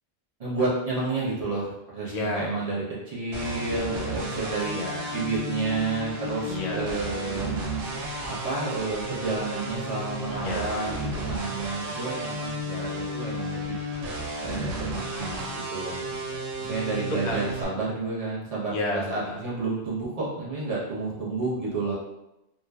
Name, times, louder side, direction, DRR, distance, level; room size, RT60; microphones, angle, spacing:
voice 1, 0.4-4.8 5.1-7.7 8.3-13.8 14.4-16.0 16.6-21.9, right 3 dB, 40° right, -6 dB, 0.7 m, -30 dB
voice 2, 2.1-2.6 4.7-5.2 6.4-7.0 10.3-10.8 12.6-13.1 16.1-16.6 17.2-17.4 18.6-19.4, left 2 dB, 55° left, -2 dB, 0.5 m, -33 dB
sound 1, 3.3-17.6, right 1 dB, 90° right, 0.9 m, -33 dB
2.6 x 2.1 x 2.2 m, 0.92 s
omnidirectional pair, 1.1 m